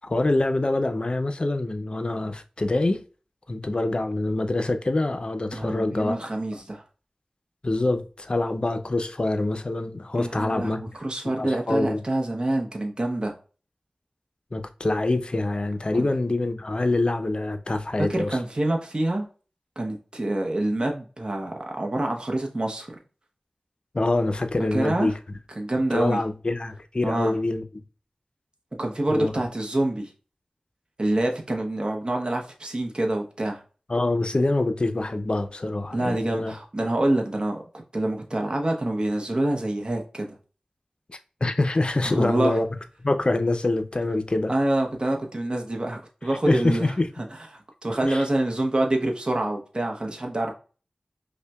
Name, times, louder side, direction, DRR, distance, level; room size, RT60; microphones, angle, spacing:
voice 1, 0.0-3.0 3.5-6.2 6.5-6.6 7.6-10.8 11.3-12.0 14.5-18.4 23.9-25.1 25.9-27.6 29.1-29.3 33.9-36.5 41.1-42.7 43.0-44.5 46.5-47.1 48.0-48.2, left 2 dB, 45° left, 0.4 m, -25 dB
voice 2, 5.5-6.8 10.2-13.3 15.9-16.1 18.1-19.3 19.8-23.0 24.7-25.1 25.6-26.2 27.0-27.3 28.8-30.1 31.0-33.6 35.9-37.6 37.9-40.3 42.0-42.6 44.5-46.9 47.8-50.5, right 1 dB, 40° right, 0.7 m, -26 dB
5.4 x 2.1 x 2.2 m
wide cardioid pair, 55°, 2 cm